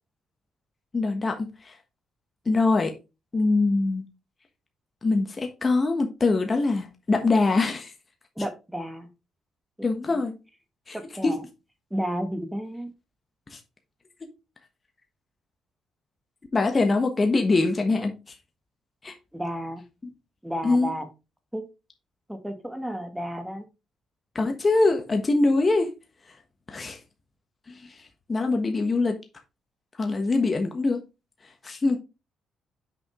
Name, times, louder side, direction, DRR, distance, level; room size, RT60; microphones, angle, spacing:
voice 1, 0.9-1.4 1.6-1.7 2.5-2.9 3.3-4.0 5.0-7.9 9.8-10.3 10.9-11.0 11.2-11.3 13.5-13.6 16.5-18.1 19.0-19.1 20.0-20.1 20.6-20.9 24.3-25.9 26.7-27.0 27.7-27.8 28.3-29.2 30.0-31.0 31.6-32.0, left 3 dB, 30° left, 1.3 m, -23 dB
voice 2, 8.4-9.1 10.9-11.4 11.9-12.9 19.3-19.8 20.4-21.1 21.5-21.6 22.3-23.6, equal, 5° right, 1.5 m, -32 dB
6.4 x 5.1 x 3.7 m
cardioid pair, 90°, 0 cm